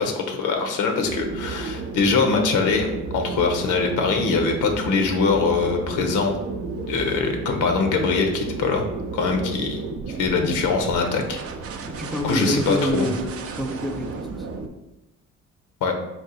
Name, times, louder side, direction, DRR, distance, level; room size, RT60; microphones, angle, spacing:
voice 1, 0.0-6.3 6.9-8.8 9.1-11.4 12.2-13.1 15.8-16.0, left 4 dB, 80° left, 4 dB, 0.7 m, -23 dB
sound 1, 1.0-14.7, right 4 dB, 50° right, 0.5 m, -32 dB
voice 2, 11.8-14.5, equal, ahead, 4 dB, 0.4 m, -27 dB
4.1 x 2.4 x 3.9 m, 0.97 s
cardioid pair, 90°, 30 cm